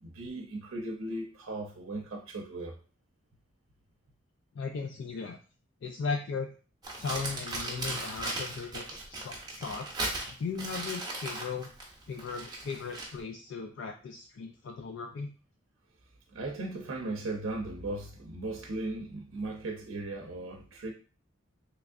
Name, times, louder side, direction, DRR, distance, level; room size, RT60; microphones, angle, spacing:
voice 1, 0.0-2.8 16.3-20.9, right 2 dB, 80° right, 0.6 m, -37 dB
voice 2, 4.5-5.4 5.8-6.5 7.0-9.9 10.3-11.7 12.1-15.3, left 5 dB, 60° left, 0.3 m, -37 dB
Crumpling crinkling, 6.8-13.2, right 2 dB, 20° right, 0.7 m, -37 dB
3.4 x 3.1 x 2.5 m
head